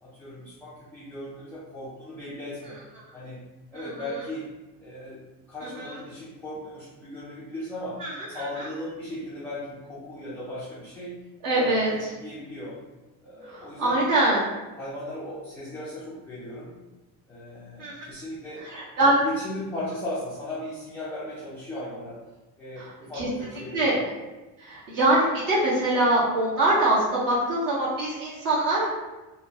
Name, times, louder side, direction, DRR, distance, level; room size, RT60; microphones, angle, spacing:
voice 1, 0.0-2.8 3.1-3.4 3.7-4.5 4.8-12.8 13.2-14.0 14.8-16.8 17.3-18.7 19.0-22.2 22.6-24.0, left 1 dB, 5° left, -9 dB, 0.4 m, -37 dB
voice 2, 3.7-4.1 5.6-5.9 8.0-8.4 11.4-11.9 13.5-14.4 17.8-17.9 18.6-19.2 22.8-22.9 23.2-23.3 23.7-24.0 24.6-28.9, right 1 dB, 50° right, -7 dB, 1.4 m, -23 dB
3.2 x 2.1 x 2.7 m, 1.1 s
cardioid pair, 140°, 41 cm